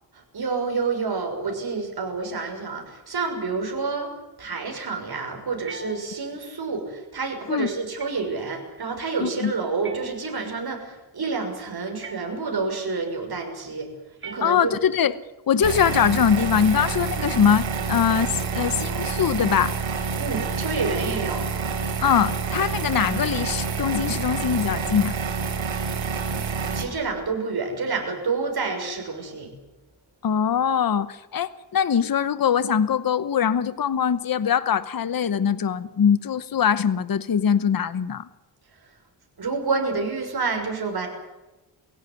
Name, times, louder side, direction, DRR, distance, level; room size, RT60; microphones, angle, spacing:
voice 1, 0.1-4.1 4.4-14.7 20.2-21.4 26.3-29.5 38.7-38.9 39.4-41.1, right 4 dB, 55° right, 3 dB, 6.3 m, -29 dB
sound 1, 5.6-6.5 8.0-8.5 9.8-10.7 12.0-12.7 14.2-15.1, right 3 dB, 25° right, 2.5 m, -43 dB
voice 2, 9.2-9.5 14.4-15.1 15.5-19.8 22.0-25.1 30.2-38.3, left 8 dB, 50° left, 14 dB, 1.0 m, -22 dB
sound 2, 15.6-26.8, right 5 dB, 85° right, 3.8 m, -28 dB
23.5 x 16.5 x 9.7 m, 1.0 s
wide cardioid pair, 95°, 45 cm